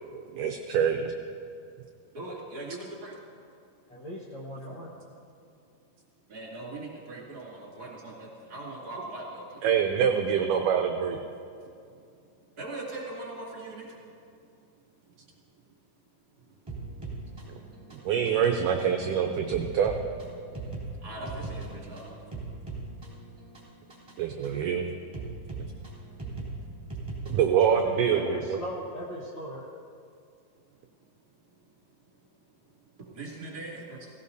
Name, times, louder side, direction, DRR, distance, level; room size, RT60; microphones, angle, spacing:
voice 1, 0.3-1.1 9.6-11.2 17.9-19.9 24.2-24.8 27.3-28.6, right 8 dB, 80° right, 3 dB, 1.9 m, -25 dB
voice 2, 2.1-3.1 4.7-4.8 6.3-9.6 11.9-12.0 12.6-14.0 15.1-15.2 16.8-17.9 21.0-22.2 33.1-34.1, right 2 dB, 30° right, -5 dB, 2.8 m, -41 dB
voice 3, 3.9-4.9 27.8-29.6, equal, 85° left, -4 dB, 1.0 m, -38 dB
sound 1, 16.7-27.9, right 3 dB, 10° right, 2.7 m, -40 dB
17.5 x 16.5 x 2.7 m, 2.4 s
omnidirectional pair, 4.3 m